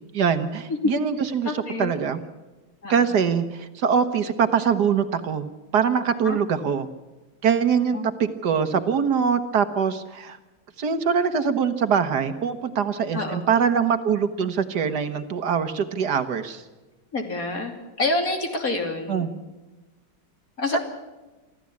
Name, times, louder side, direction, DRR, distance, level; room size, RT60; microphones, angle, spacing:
voice 1, 0.1-1.5 1.8-2.2 2.9-5.5 5.7-6.9 7.4-10.4 10.8-16.6 19.1-19.3, right 7 dB, 65° right, 10 dB, 1.6 m, -23 dB
voice 2, 1.4-1.9 2.8-3.2 6.2-6.4 7.9-8.1 13.1-13.4 17.1-19.3 20.6-20.8, left 2 dB, 50° left, 4 dB, 3.2 m, -27 dB
25.0 x 14.5 x 8.5 m, 1.2 s
omnidirectional pair, 2.0 m